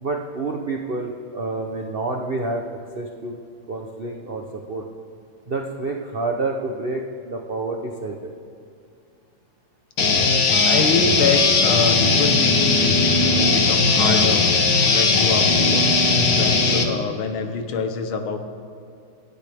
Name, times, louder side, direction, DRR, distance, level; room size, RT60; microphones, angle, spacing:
voice 1, 0.0-2.6 3.0-3.3 3.7-4.8 5.5-8.3, right 3 dB, 60° right, 1 dB, 0.6 m, -28 dB
sound 1, 10.0-16.8, left 3 dB, 60° left, 1.7 m, -18 dB
voice 2, 10.6-14.5 14.9-15.9 16.3-18.4, left 5 dB, 75° left, 6 dB, 1.9 m, -26 dB
26.5 x 9.0 x 3.5 m, 2.6 s
omnidirectional pair, 2.3 m